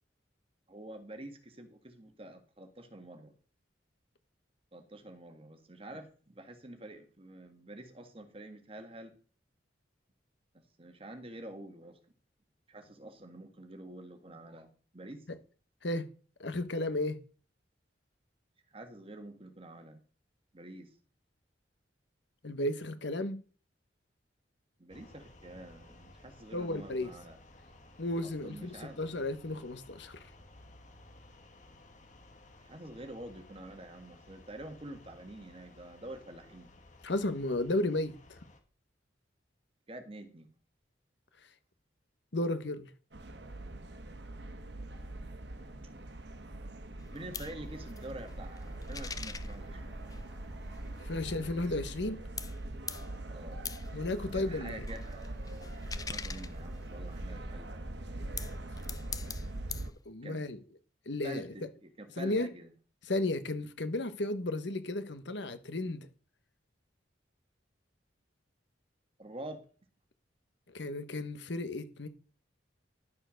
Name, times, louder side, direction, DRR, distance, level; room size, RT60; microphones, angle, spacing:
voice 1, 0.7-3.3 4.7-9.1 10.8-12.0 12.7-15.2 18.7-20.0 20.5-20.9 24.8-27.4 28.2-29.0 32.6-36.7 39.9-40.5 47.1-49.9 53.3-53.6 54.3-55.3 56.1-57.8 60.2-60.4 61.2-62.7 69.2-69.6, right 1 dB, 30° right, 1.7 m, -47 dB
voice 2, 16.4-17.2 22.4-23.4 26.5-27.1 28.0-30.2 37.0-38.4 42.3-42.9 51.0-52.2 53.9-54.9 60.0-60.6 61.0-61.7 62.2-62.5 63.1-66.1 70.7-72.1, left 2 dB, 70° left, 1.2 m, -34 dB
sound 1, 24.9-38.6, left 2 dB, 40° left, 1.8 m, -57 dB
sound 2, 43.1-59.9, right 1 dB, 65° right, 1.2 m, -42 dB
sound 3, 47.0-52.1 52.4-57.4 58.1-59.9, left 6 dB, 20° left, 0.5 m, -45 dB
11.5 x 6.9 x 6.4 m
head